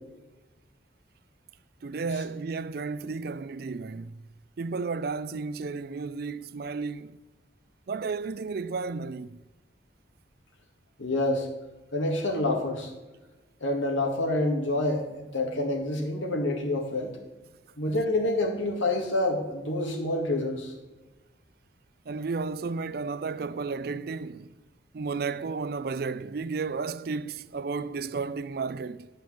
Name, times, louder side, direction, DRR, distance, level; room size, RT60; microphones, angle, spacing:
voice 1, 1.8-4.2 4.6-7.2 7.9-9.4 22.1-24.5 24.9-29.1, right 4 dB, 50° right, 0.4 m, -33 dB
voice 2, 11.0-11.5 11.9-12.9 13.6-17.2 17.8-20.7, left 2 dB, 85° left, 2.1 m, -27 dB
11.0 x 5.2 x 7.6 m
head